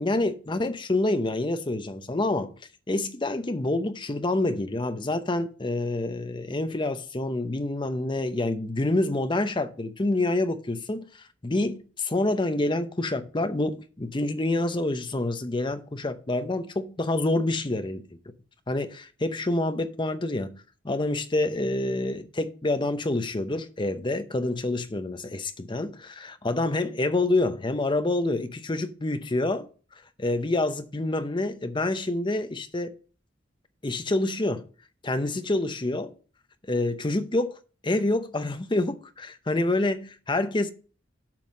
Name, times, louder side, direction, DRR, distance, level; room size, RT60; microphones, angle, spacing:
voice 1, 0.0-2.5 2.9-18.0 18.7-20.5 20.8-29.7 30.2-32.9 33.8-34.6 35.0-36.1 36.7-37.5 37.8-40.7, left 2 dB, 25° left, 0.7 m, -27 dB
7.6 x 5.6 x 5.3 m
head